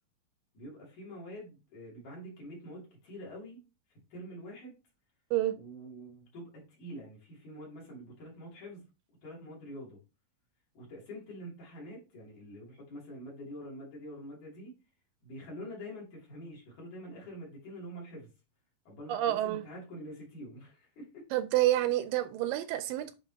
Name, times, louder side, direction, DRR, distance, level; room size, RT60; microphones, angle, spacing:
voice 1, 0.5-3.6 3.9-4.7 5.5-8.9 9.2-10.0 10.7-14.7 15.2-18.3 18.9-21.3, equal, 60° left, 4.1 m, -46 dB
voice 2, 19.1-19.6 21.3-23.1, right 14 dB, 80° right, 2.2 m, -28 dB
8.9 x 3.9 x 2.8 m
omnidirectional pair, 4.1 m